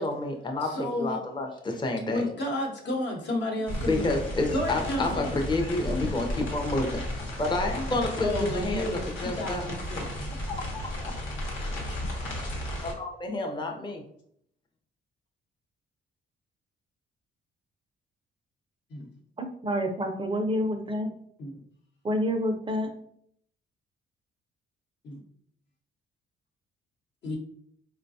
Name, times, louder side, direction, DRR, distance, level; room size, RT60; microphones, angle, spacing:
voice 1, 0.0-2.2 3.8-7.0 7.4-9.7 10.5-11.1 11.4-11.5 12.8-14.0, left 2 dB, 25° left, 3 dB, 0.6 m, -29 dB
voice 2, 0.6-1.2 2.1-4.1 4.5-5.3 8.2-10.1 18.9-19.1 21.4-21.5 25.0-25.2 27.2-27.4, left 1 dB, 60° left, 1 dB, 0.9 m, -32 dB
sound 1, 3.7-12.9, left 1 dB, 85° left, 1.1 m, -34 dB
voice 3, 19.4-21.1 22.0-22.9, equal, 25° right, 4 dB, 0.4 m, -28 dB
3.9 x 2.2 x 2.6 m, 0.68 s
cardioid pair, 90°, 20 cm